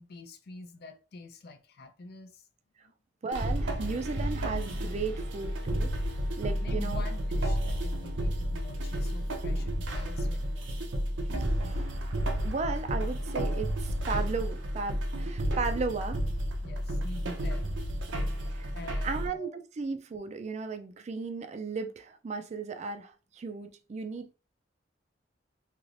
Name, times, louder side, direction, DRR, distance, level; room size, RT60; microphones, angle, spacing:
voice 1, 0.0-2.4 2.8-2.9 6.6-10.9 16.6-17.7 18.7-19.5, left 3 dB, 60° left, 0.5 m, -47 dB
voice 2, 3.2-5.9 6.4-7.0 11.2-11.9 12.4-16.2 18.5-18.7 19.0-19.5 19.8-24.3, right 4 dB, 40° right, 0.3 m, -35 dB
sound 1, 3.3-19.3, equal, 90° right, 0.7 m, -31 dB
3.2 x 2.9 x 2.5 m
head